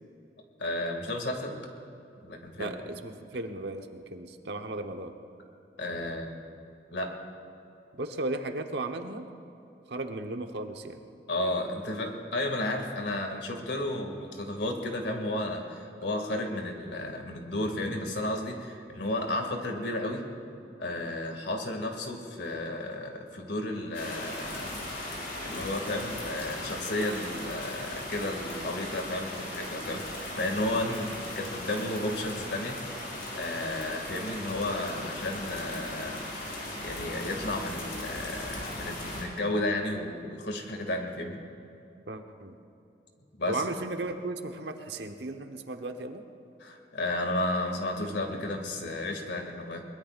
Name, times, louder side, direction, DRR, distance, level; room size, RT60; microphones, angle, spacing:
voice 1, 0.6-1.6 2.2-2.7 5.8-6.3 6.9-7.1 11.3-20.2 20.8-24.8 25.0-33.0 33.3-41.4 43.4-43.6 46.6-49.8, left 1 dB, 80° left, 3 dB, 2.2 m, -33 dB
voice 2, 2.6-5.1 8.0-9.2 9.9-11.0 30.8-31.1 42.1-42.5 43.5-46.2, right 2 dB, 70° right, 5 dB, 1.1 m, -35 dB
sound 1, 23.9-39.2, left 1 dB, 60° left, 4.6 m, -38 dB
23.0 x 21.0 x 2.5 m, 2.8 s
head